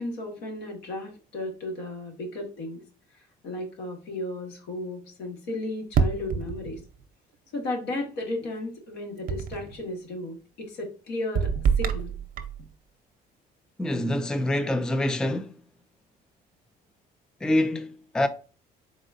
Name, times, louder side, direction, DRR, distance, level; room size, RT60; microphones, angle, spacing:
voice 1, 0.0-2.8 3.4-6.8 7.5-12.1, left 2 dB, 85° left, 1.6 m, -34 dB
sound 1, 5.9-7.0 9.3-9.8 11.4-12.6, right 6 dB, 55° right, 0.6 m, -26 dB
voice 2, 13.8-15.5 17.4-18.3, left 1 dB, 5° left, 0.3 m, -25 dB
4.0 x 3.7 x 2.5 m
cardioid pair, 110°, 17 cm